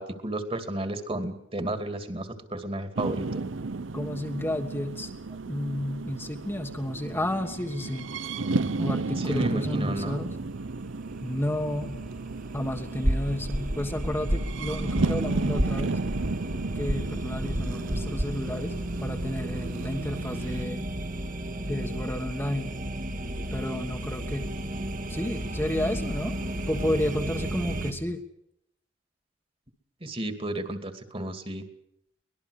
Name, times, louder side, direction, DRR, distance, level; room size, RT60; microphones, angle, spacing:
voice 1, 0.0-3.4 9.2-10.2 30.0-31.6, right 1 dB, 30° right, 8 dB, 2.5 m, -33 dB
sound 1, 3.0-20.6, right 3 dB, 85° right, 0.8 m, -33 dB
voice 2, 3.9-5.1 5.5-8.1 8.8-10.3 11.2-12.0 12.5-16.0 16.7-18.7 19.0-20.9 21.6-22.8 23.5-24.5 25.1-28.2, left 1 dB, 10° left, 3 dB, 1.5 m, -31 dB
sound 2, 10.0-27.9, right 1 dB, 45° right, 2.1 m, -35 dB
sound 3, 13.0-18.3, equal, 65° right, 4.3 m, -31 dB
24.0 x 20.0 x 6.6 m, 0.76 s
head